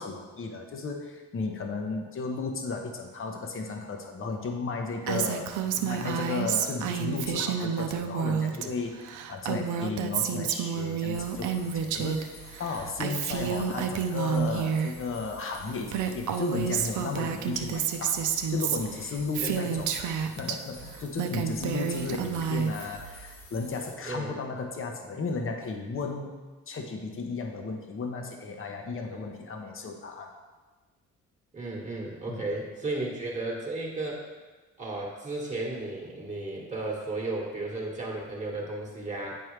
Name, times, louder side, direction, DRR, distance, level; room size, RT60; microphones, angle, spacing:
voice 1, 0.0-5.5 5.8-9.0 9.3-18.2 18.5-20.0 20.3-26.3 26.7-30.3 32.3-32.4, left 4 dB, 45° left, 3 dB, 1.0 m, -34 dB
Female speech woman speaking, 5.1-8.7 8.9-12.2 12.5-14.9 15.6-15.7 15.9-20.6 21.0-22.9, right 7 dB, 75° right, 0.6 m, -29 dB
sound 1, 11.1-23.9, equal, 60° left, 1.9 m, -48 dB
voice 2, 19.4-19.8 24.0-24.3 29.1-29.2 31.5-34.2 34.8-39.4, right 2 dB, 25° right, -2 dB, 1.4 m, -34 dB
9.1 x 4.6 x 3.2 m, 1.3 s
cardioid pair, 90°, 30 cm